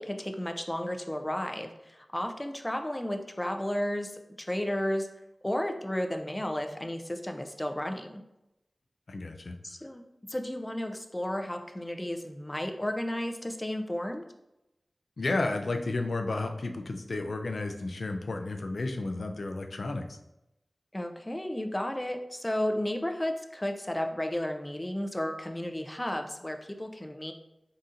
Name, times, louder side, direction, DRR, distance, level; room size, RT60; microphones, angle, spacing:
voice 1, 0.0-5.1 5.4-8.2 9.6-10.0 10.3-14.2 20.9-27.3, left 1 dB, 20° left, 5 dB, 0.4 m, -33 dB
voice 2, 9.1-9.6 15.2-20.2, left 2 dB, 85° left, 5 dB, 0.4 m, -32 dB
4.0 x 3.8 x 2.5 m, 0.90 s
wide cardioid pair, 60°, 0 cm